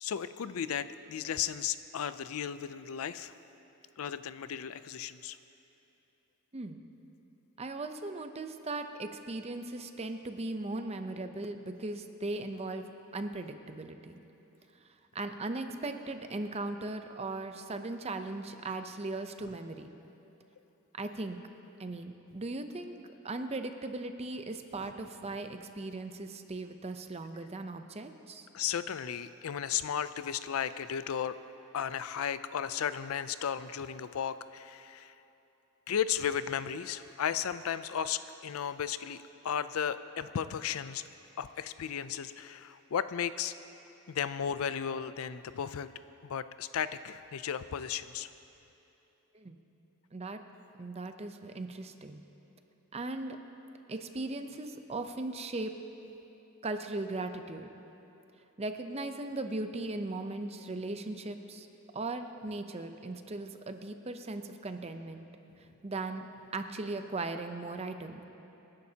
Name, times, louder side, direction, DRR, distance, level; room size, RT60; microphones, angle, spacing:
voice 1, 0.0-3.3 4.0-5.4 28.5-31.4 31.7-35.1 35.9-39.2 39.4-41.0 41.4-43.5 44.1-45.9 46.2-48.3, left 8 dB, 70° left, 13 dB, 0.4 m, -35 dB
voice 2, 6.5-6.9 7.6-12.9 13.1-14.1 15.1-19.9 20.9-21.4 21.8-23.0 23.2-28.5 49.3-49.6 50.1-50.4 50.8-52.2 52.9-53.4 53.9-55.7 56.6-57.7 58.6-61.7 61.9-65.3 65.6-66.3 66.5-68.2, right 2 dB, 30° right, 7 dB, 0.6 m, -38 dB
26.0 x 10.5 x 2.8 m, 2.9 s
head